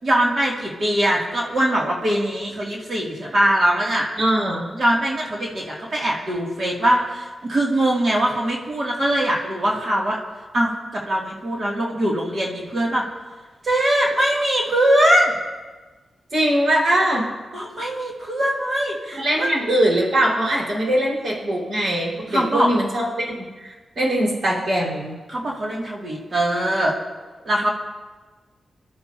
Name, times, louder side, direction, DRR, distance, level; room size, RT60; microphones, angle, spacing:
voice 1, 0.0-4.1 4.7-10.2 10.5-13.0 13.6-15.4 17.5-19.5 22.3-22.7 25.3-26.9 27.4-27.7, right 1 dB, 50° right, -3 dB, 2.5 m, -21 dB
voice 2, 4.2-4.6 16.3-17.2 19.1-23.1 23.6-25.2, right 1 dB, 70° right, -4 dB, 4.7 m, -21 dB
25.5 x 12.0 x 2.8 m, 1.3 s
cardioid pair, 90°, 0 cm